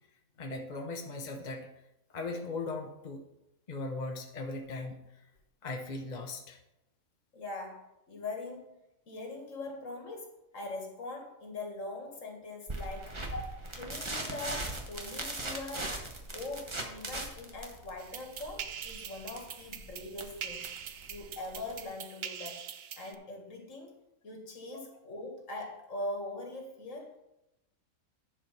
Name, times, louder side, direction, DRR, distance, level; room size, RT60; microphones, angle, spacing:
voice 1, 0.4-1.7 2.1-3.2 3.7-5.2 5.6-6.6 13.3-13.4 24.7-24.8, left 3 dB, 35° left, 2 dB, 1.0 m, -38 dB
voice 2, 7.3-8.8 9.1-13.1 13.8-16.0 16.3-20.7 21.1-22.6 23.0-24.0 24.2-27.2, left 2 dB, 60° left, 2 dB, 2.0 m, -42 dB
sound 1, 12.7-21.8, right 2 dB, 20° right, 1.2 m, -40 dB
sound 2, 18.0-23.1, right 8 dB, 60° right, 0.7 m, -43 dB
10.5 x 5.0 x 5.9 m, 0.88 s
omnidirectional pair, 1.5 m